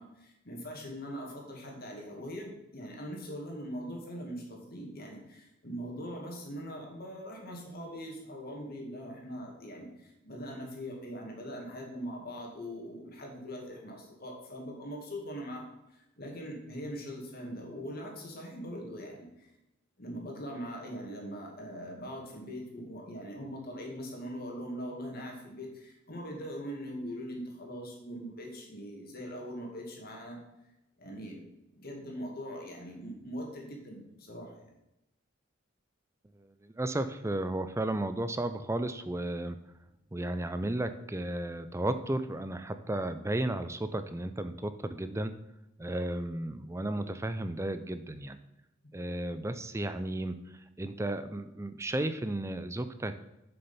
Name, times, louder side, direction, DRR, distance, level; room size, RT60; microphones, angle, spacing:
voice 1, 0.0-19.5 20.0-30.4 31.0-34.7 48.8-48.9, equal, 50° left, 0 dB, 2.2 m, -41 dB
voice 2, 36.4-39.6 40.1-45.3 45.8-48.4 48.9-50.4 50.8-53.2, right 1 dB, 15° right, 10 dB, 0.5 m, -34 dB
6.9 x 6.7 x 5.5 m, 0.92 s
head